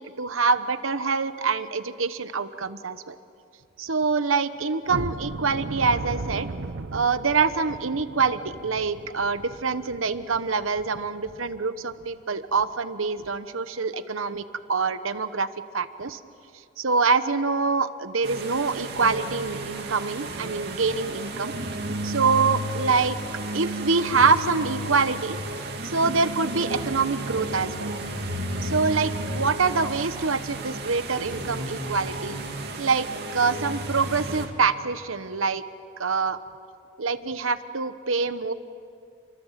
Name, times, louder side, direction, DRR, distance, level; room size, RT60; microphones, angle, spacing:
voice 1, 0.0-3.2 3.8-6.5 6.9-14.4 14.7-15.5 15.7-16.2 16.8-21.5 22.0-23.2 23.5-25.4 25.8-27.9 28.6-32.4 32.8-35.6 36.0-36.4 37.0-38.5, right 4 dB, 90° right, 12 dB, 1.1 m, -25 dB
sound 1, 4.9-11.6 12.0-12.1 12.5-12.7 13.2-13.4, right 3 dB, 75° right, 0.7 m, -37 dB
sound 2, 18.2-34.5, right 1 dB, 55° right, 2.7 m, -33 dB
30.0 x 24.0 x 7.5 m, 2.4 s
head